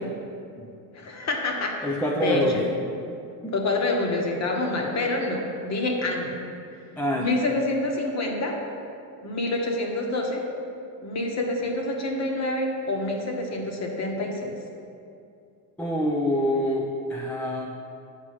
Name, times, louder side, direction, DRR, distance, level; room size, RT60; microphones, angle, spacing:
voice 1, 0.9-1.7 2.2-2.4 3.5-6.4 7.2-8.6 9.2-10.4 11.0-14.5, left 2 dB, 35° left, 1 dB, 1.3 m, -27 dB
voice 2, 1.8-2.6 3.4-3.5 7.0-7.4 15.8-17.7, equal, 5° left, -2 dB, 0.4 m, -26 dB
8.2 x 4.7 x 5.7 m, 2.6 s
supercardioid pair, 110°, 50 cm